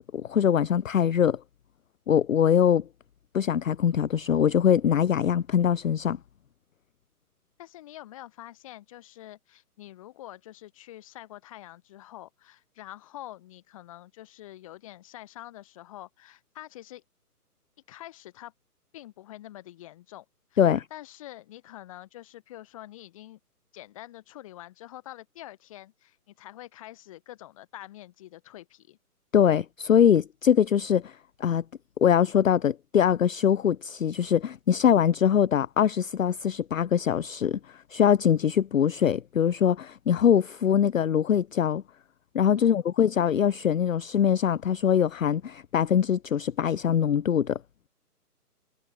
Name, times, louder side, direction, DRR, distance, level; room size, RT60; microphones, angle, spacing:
voice 1, 0.1-1.4 2.1-2.8 3.3-6.2 20.6-20.9 29.3-31.6 32.0-41.8 42.3-47.6, left 8 dB, 60° left, 0.6 m, -23 dB
voice 2, 7.6-17.0 17.9-18.5 18.9-20.3 20.5-23.4 23.7-29.0 42.6-42.8, left 14 dB, 20° left, 5.2 m, -46 dB
hypercardioid pair, 170°, 47 cm